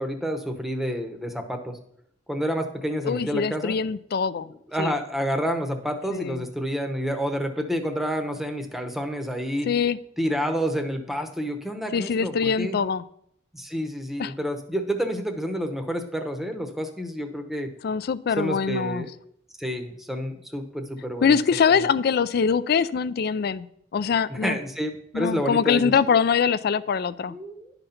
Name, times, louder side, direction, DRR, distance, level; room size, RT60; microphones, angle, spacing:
voice 1, 0.0-1.8 2.3-3.8 4.5-9.7 10.2-12.8 13.5-17.7 18.4-19.1 19.6-21.4 21.7-21.9 24.3-25.9 27.3-27.7, equal, ahead, 6 dB, 0.8 m, -29 dB
voice 2, 3.0-4.5 4.8-4.9 6.1-6.5 9.7-10.0 11.9-13.0 14.2-14.3 17.8-19.1 21.2-23.7 23.9-24.6 25.1-27.3, left 6 dB, 55° left, 17 dB, 0.4 m, -23 dB
11.0 x 4.0 x 5.7 m, 0.70 s
head